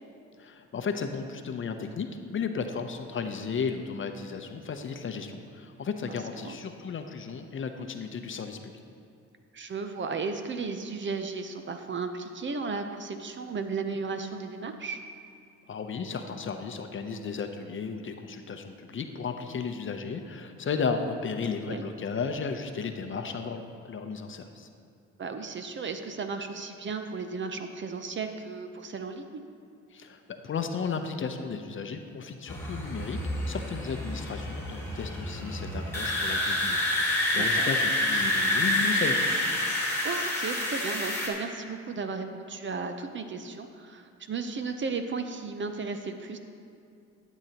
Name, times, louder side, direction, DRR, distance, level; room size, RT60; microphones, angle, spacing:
voice 1, 0.4-2.1 2.3-8.7 15.7-24.7 29.9-33.2 33.4-39.3, left 5 dB, 40° left, 6 dB, 0.7 m, -34 dB
voice 2, 9.5-15.0 21.7-21.9 25.2-29.4 37.4-37.7 40.0-46.4, right 4 dB, 40° right, 7 dB, 0.7 m, -35 dB
sound 1, 32.5-41.3, left 1 dB, 10° left, 2.0 m, -28 dB
12.0 x 8.2 x 2.9 m, 2.5 s
cardioid pair, 90°, 30 cm